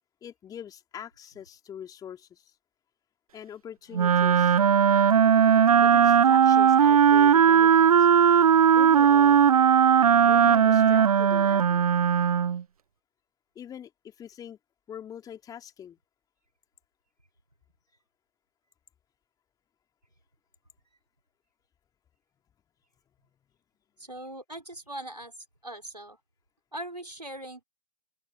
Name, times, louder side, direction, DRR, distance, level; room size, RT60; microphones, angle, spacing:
voice 1, 0.2-2.4 3.3-4.6 5.8-8.1 8.7-9.4 10.3-11.9 13.6-14.6 14.9-16.0, left 9 dB, 20° left, 3.7 m, -42 dB
Wind instrument woodwind instrument, 3.9-12.6, right 8 dB, 65° right, 0.7 m, -18 dB
voice 2, 24.0-25.3 25.6-26.2 26.7-27.6, right 1 dB, 90° right, 4.6 m, -40 dB
figure-of-eight pair, 110°, 20 cm